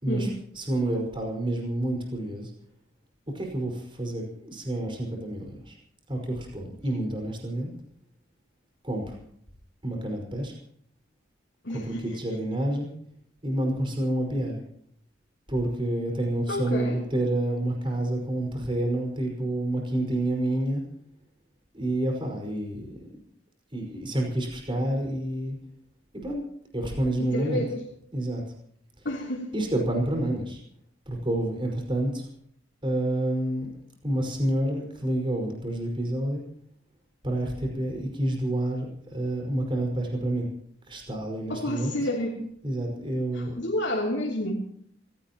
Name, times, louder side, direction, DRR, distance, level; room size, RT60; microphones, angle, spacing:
voice 1, 0.6-2.5 3.3-5.8 6.1-7.7 8.8-9.2 9.8-10.5 11.7-12.9 13.4-14.6 15.5-20.8 21.7-23.1 23.7-25.6 26.1-26.4 26.7-27.6 28.1-28.4 29.0-29.1 29.5-30.6 31.1-32.3 32.8-33.7 34.0-36.4 37.2-40.5 40.9-41.9 42.6-43.6, right 1 dB, 25° right, 1 dB, 5.3 m, -28 dB
voice 2, 11.6-12.2 16.5-17.0 27.2-27.8 29.0-29.5 41.5-42.4 43.3-44.5, left 1 dB, 65° left, -3 dB, 3.2 m, -30 dB
26.5 x 17.5 x 3.0 m, 0.67 s
head